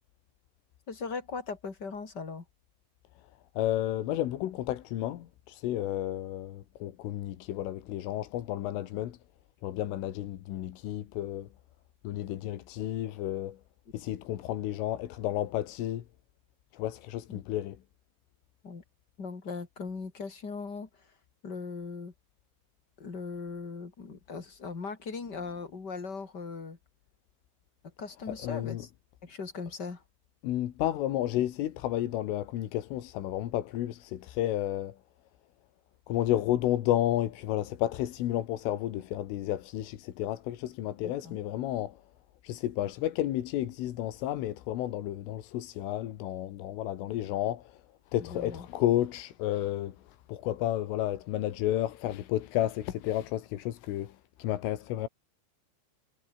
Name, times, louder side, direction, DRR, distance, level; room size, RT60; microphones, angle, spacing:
voice 1, 0.9-2.4 17.3-17.4 18.6-18.8 19.2-20.9 21.4-22.1 23.0-26.8 28.0-28.9 29.2-30.0 41.0-41.4 48.2-48.7, left 4 dB, 25° left, 2.7 m, -39 dB
voice 2, 3.6-9.2 9.6-11.5 12.0-13.6 13.9-16.1 16.7-17.8 28.3-28.9 30.4-35.0 36.1-42.0 42.4-47.8 48.1-55.1, left 13 dB, 80° left, 4.3 m, -32 dB
omnidirectional pair, 5.8 m